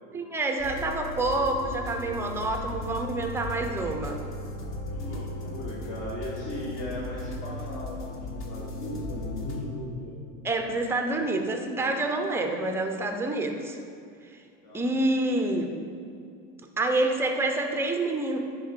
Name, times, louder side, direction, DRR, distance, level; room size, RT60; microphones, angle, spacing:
voice 1, 0.1-4.2 10.4-13.8 14.7-15.7 16.8-18.4, right 2 dB, 5° right, 4 dB, 0.4 m, -27 dB
sound 1, 0.6-9.6, left 1 dB, 35° left, 1.1 m, -36 dB
voice 2, 4.9-10.2 14.6-14.8, left 1 dB, 50° left, -6 dB, 1.6 m, -37 dB
9.9 x 3.5 x 3.7 m, 2.4 s
supercardioid pair, 120°, 39 cm